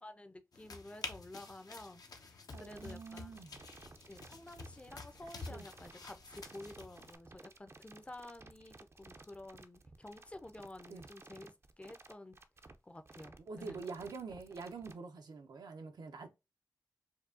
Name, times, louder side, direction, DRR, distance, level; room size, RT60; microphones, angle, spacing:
voice 1, 0.0-3.3 4.1-12.4 12.8-13.8, left 1 dB, 15° left, 0.5 m, -51 dB
sound 1, 0.5-7.2, left 3 dB, 65° left, 0.7 m, -49 dB
sound 2, 2.5-14.9, right 3 dB, 40° right, 0.5 m, -56 dB
voice 2, 2.5-3.5 5.5-5.7 10.9-11.1 13.4-16.3, right 4 dB, 80° right, 0.7 m, -46 dB
4.5 x 2.3 x 2.5 m
cardioid pair, 50°, 7 cm